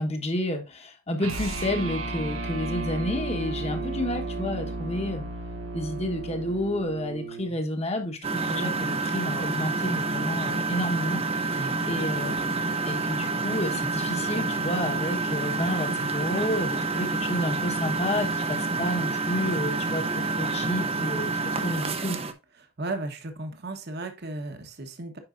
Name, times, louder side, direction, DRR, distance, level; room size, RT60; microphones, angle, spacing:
voice 1, 0.0-5.2 5.7-22.1, left 1 dB, 30° left, 1.1 m, -30 dB
sound 1, 1.2-7.6, right 3 dB, 85° right, 1.1 m, -33 dB
Engine, 8.2-22.3, right 3 dB, 30° right, 0.6 m, -28 dB
voice 2, 22.8-25.2, right 2 dB, 50° right, 1.1 m, -35 dB
8.7 x 5.4 x 2.5 m
head